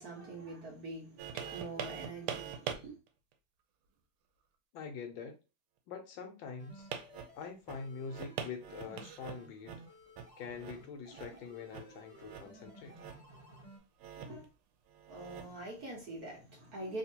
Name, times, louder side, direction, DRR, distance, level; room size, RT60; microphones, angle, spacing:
voice 1, 0.0-2.9 14.1-14.5 15.1-17.0, right 2 dB, 50° right, 1.5 m, -44 dB
sound 1, 1.2-2.8 3.3-3.4 6.8-9.8 10.2-10.3 10.6-10.8 11.1-11.4 11.7-11.9 12.2-12.6 12.9-13.4 14.0-14.5 14.9-15.7 16.3-16.4, right 8 dB, 85° right, 1.5 m, -43 dB
voice 2, 4.7-5.3 5.9-6.9 7.3-9.7 10.4-13.0, left 5 dB, 75° left, 1.3 m, -44 dB
sound 2, 6.6-13.8, equal, 20° right, 1.1 m, -56 dB
3.6 x 2.7 x 2.7 m
omnidirectional pair, 2.3 m